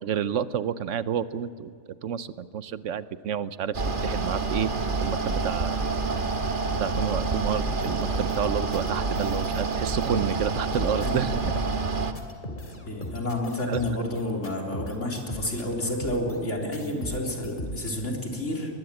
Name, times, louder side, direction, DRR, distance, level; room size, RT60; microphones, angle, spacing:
voice 1, 0.0-1.7 2.0-4.7 5.0-5.8 6.8-11.5 13.7-13.8, right 8 dB, 80° right, 14 dB, 1.1 m, -29 dB
Mechanical fan, 3.7-12.1, right 3 dB, 45° right, 1.5 m, -28 dB
sound 1, 7.8-8.9 9.1-10.5 10.7-11.2 11.4-11.8 12.0-16.5 16.7-17.9, left 1 dB, 40° left, 3.1 m, -38 dB
voice 2, 12.8-18.7, left 1 dB, 80° left, -1 dB, 4.1 m, -30 dB
22.0 x 20.5 x 8.8 m, 2.3 s
omnidirectional pair, 1.3 m